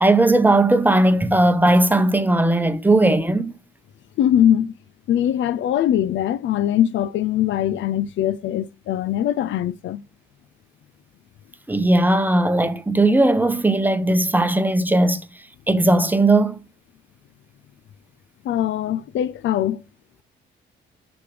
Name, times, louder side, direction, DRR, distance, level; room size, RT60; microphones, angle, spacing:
voice 1, 0.0-3.5 11.7-15.3 15.7-16.6, right 2 dB, 10° right, 0.9 m, -17 dB
voice 2, 4.2-4.7 5.1-10.0 18.4-19.8, left 11 dB, 70° left, 0.5 m, -21 dB
6.7 x 6.2 x 4.9 m
cardioid pair, 90°, 20 cm